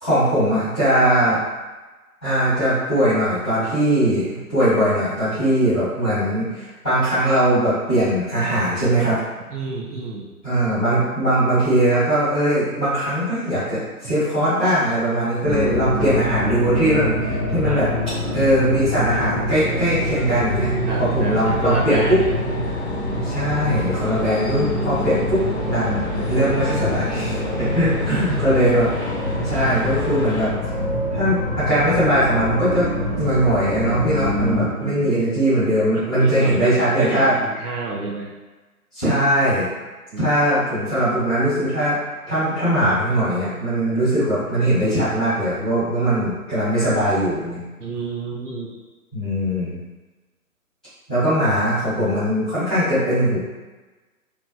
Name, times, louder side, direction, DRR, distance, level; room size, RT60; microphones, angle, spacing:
voice 1, 0.0-1.4 2.2-9.2 10.4-17.9 18.3-22.2 23.2-28.9 29.4-30.5 31.1-32.9 33.2-37.3 38.9-39.6 40.2-42.0 42.3-47.6 49.1-49.8 51.1-53.4, right 1 dB, 5° left, -24 dB, 0.5 m, -20 dB
voice 2, 9.5-10.3 14.0-14.1 17.6-17.8 20.9-22.2 27.4-27.5 28.1-28.6 34.7-35.2 35.9-38.3 40.1-40.2 47.8-48.8, right 3 dB, 85° right, -2 dB, 0.8 m, -29 dB
sound 1, 15.4-34.6, equal, 25° right, 0.7 m, -25 dB
sound 2, 19.6-30.5, left 2 dB, 45° left, 0.6 m, -33 dB
3.1 x 2.5 x 3.1 m, 1.2 s
figure-of-eight pair, 140°, 45 cm